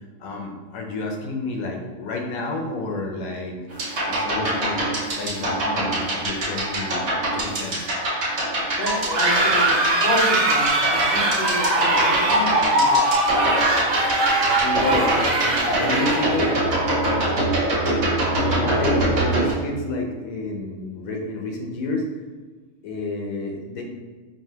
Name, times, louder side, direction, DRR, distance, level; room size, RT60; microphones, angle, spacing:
voice 1, 0.2-3.6 4.0-4.8 5.2-7.0 7.3-7.9 14.5-16.6 18.4-22.1 22.8-23.8, left 2 dB, 85° left, 1 dB, 1.1 m, -30 dB
sound 1, 3.7-19.5, right 1 dB, 55° right, 1.2 m, -24 dB
voice 2, 8.8-13.2, left 1 dB, 50° left, -1 dB, 0.9 m, -29 dB
sound 2, 8.8-16.6, right 1 dB, 80° right, 1.2 m, -21 dB
4.8 x 2.8 x 2.8 m, 1.4 s
omnidirectional pair, 1.4 m